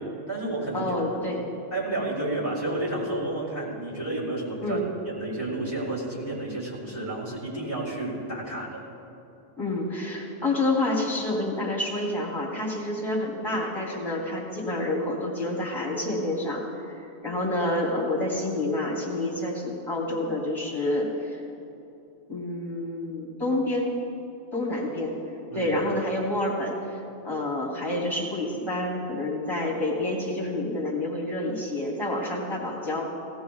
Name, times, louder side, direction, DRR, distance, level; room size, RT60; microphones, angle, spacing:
voice 1, 0.0-0.9 1.7-8.8 25.5-25.7, right 2 dB, 25° right, -7 dB, 4.1 m, -31 dB
voice 2, 0.7-1.4 4.6-4.8 9.6-21.4 22.3-23.9 24.5-25.1 25.5-26.7 27.2-33.1, left 1 dB, 20° left, -4 dB, 2.9 m, -28 dB
19.0 x 18.0 x 2.4 m, 2.7 s
omnidirectional pair, 1.3 m